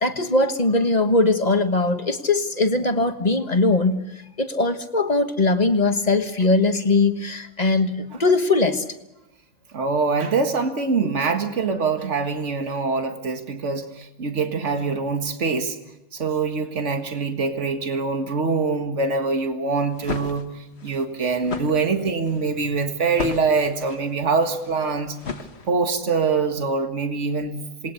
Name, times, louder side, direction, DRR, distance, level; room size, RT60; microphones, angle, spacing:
voice 1, 0.0-4.1 4.4-8.8, left 3 dB, 35° left, 7 dB, 1.5 m, -20 dB
voice 2, 9.7-15.8 16.1-25.2 25.7-27.9, right 4 dB, 70° right, 5 dB, 2.0 m, -24 dB
sound 1, 19.8-26.1, left 4 dB, 60° left, 1.7 m, -35 dB
27.5 x 20.5 x 7.0 m, 0.94 s
omnidirectional pair, 1.3 m